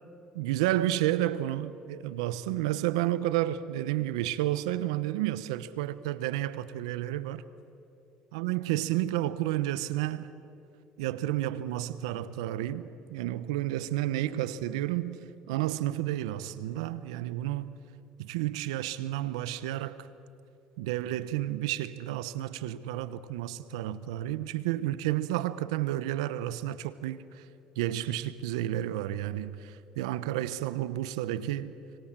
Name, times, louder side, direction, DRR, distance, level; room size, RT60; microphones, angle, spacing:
voice 1, 0.3-7.4 8.3-10.3 11.0-15.2 15.5-17.8 18.2-20.1 20.8-27.5 27.8-31.7, right 14 dB, 90° right, 0.9 m, -31 dB
29.5 x 26.5 x 7.5 m
supercardioid pair, 85°, 3 cm